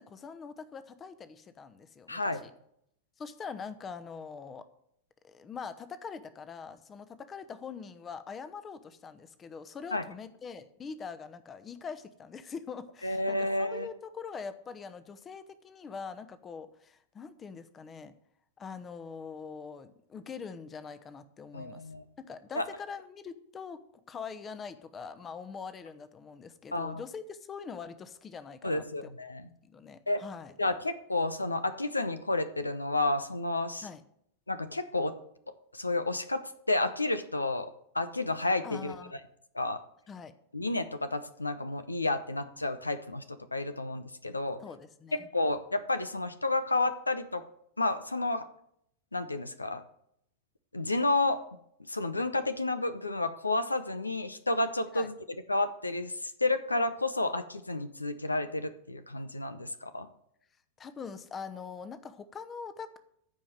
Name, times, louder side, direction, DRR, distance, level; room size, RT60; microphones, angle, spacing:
voice 1, 0.0-2.5 3.2-4.6 5.2-18.1 18.6-21.8 22.2-23.8 24.1-29.1 29.6-30.5 33.8-34.0 38.6-39.1 40.1-40.3 44.6-45.3 54.9-55.1 60.8-63.0, left 5 dB, 20° left, 12 dB, 1.0 m, -43 dB
voice 2, 2.1-2.4 9.9-10.0 13.0-13.9 21.5-22.0 22.5-22.7 26.7-27.0 28.6-29.5 30.1-30.2 30.6-33.9 34.5-35.1 35.7-37.7 37.9-38.9 39.5-39.8 40.5-44.6 45.3-47.4 47.8-48.5 49.1-49.8 50.7-51.4 51.9-55.1 55.5-60.1, left 2 dB, 80° left, 12 dB, 0.7 m, -31 dB
15.0 x 5.0 x 7.6 m, 0.73 s
figure-of-eight pair, 90°, 0 cm